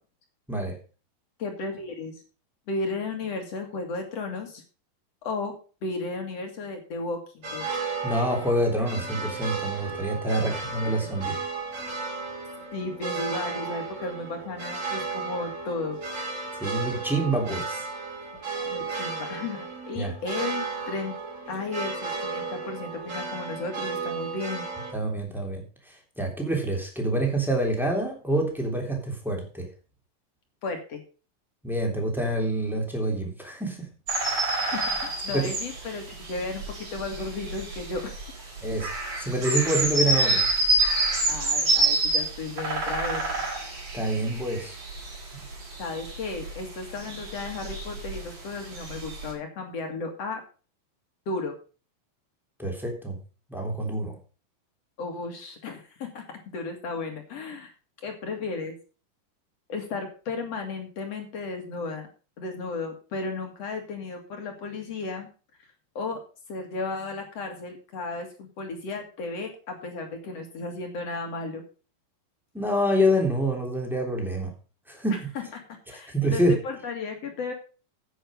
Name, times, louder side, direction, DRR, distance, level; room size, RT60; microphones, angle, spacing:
voice 1, 1.4-2.2 2.7-4.6 5.2-5.5 5.8-7.6 10.4-10.5 11.0-11.3 12.7-16.0 18.7-21.1 21.5-24.7 30.6-31.0 34.6-38.1 41.3-43.4 45.8-50.4 51.3-51.5 55.0-56.2 56.5-57.7 58.0-58.7 59.7-62.1 62.4-65.3 66.0-66.2 66.5-71.6 75.1-75.2 75.5-75.6 75.9-77.5, left 3 dB, 50° left, 4 dB, 2.6 m, -34 dB
sound 1, 7.4-24.9, right 4 dB, 25° right, 2.1 m, -34 dB
voice 2, 8.0-11.4 16.6-17.8 20.0-20.1 24.9-25.6 26.2-29.7 31.6-33.9 35.3-35.5 38.6-38.9 39.2-40.4 43.9-44.7 52.6-53.2 53.5-54.2 72.5-74.5 74.9-75.2 76.1-76.5, right 1 dB, ahead, 1 dB, 2.7 m, -26 dB
sound 2, 34.1-49.3, right 2 dB, 50° right, 5.3 m, -28 dB
10.0 x 8.3 x 5.2 m, 0.36 s
omnidirectional pair, 4.1 m